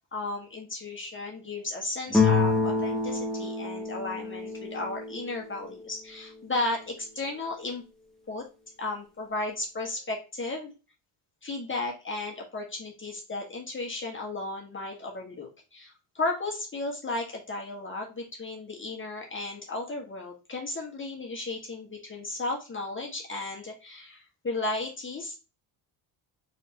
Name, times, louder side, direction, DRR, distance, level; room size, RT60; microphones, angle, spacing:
voice 1, 0.1-7.8 8.3-8.4 8.8-10.7 11.4-25.4, left 2 dB, 25° left, -1 dB, 1.5 m, -34 dB
sound 1, 2.1-5.7, left 4 dB, ahead, 1.1 m, -27 dB
4.4 x 3.6 x 2.9 m, 0.31 s
supercardioid pair, 75°, 45 cm